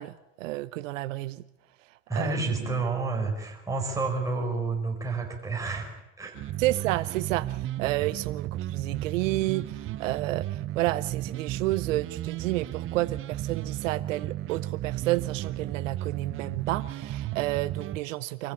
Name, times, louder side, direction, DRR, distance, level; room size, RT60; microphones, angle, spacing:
voice 1, 0.0-1.4 2.1-2.4 2.7-2.8 6.6-18.5, right 17 dB, 75° right, 0.8 m, -30 dB
voice 2, 2.1-5.9 6.2-6.3, right 3 dB, 10° right, 4.9 m, -29 dB
sound 1, 6.3-18.0, right 13 dB, 35° right, 0.7 m, -34 dB
24.5 x 15.0 x 8.6 m
hypercardioid pair, 100°, 39 cm